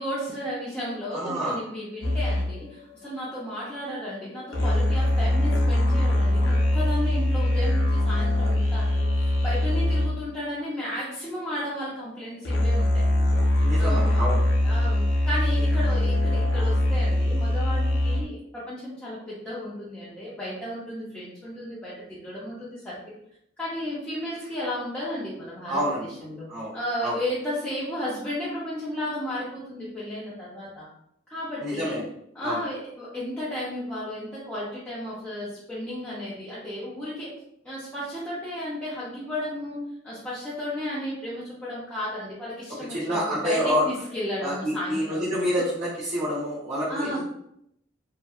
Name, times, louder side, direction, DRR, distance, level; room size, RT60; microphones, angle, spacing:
voice 1, 0.0-14.3 14.6-23.2 23.6-30.9 31.3-32.0 32.3-37.3 37.6-45.2 45.6-45.7 46.9-47.2, left 1 dB, 5° left, -10 dB, 0.5 m, -34 dB
voice 2, 1.1-1.6 13.6-14.4 25.7-26.1 26.5-27.2 31.6-32.0 32.4-32.6 42.9-43.9 44.4-47.2, equal, 40° right, -9 dB, 0.8 m, -27 dB
sound 1, 2.0-10.5 12.4-18.2, left 1 dB, 80° left, 0.5 m, -23 dB
2.7 x 2.2 x 2.3 m, 0.75 s
head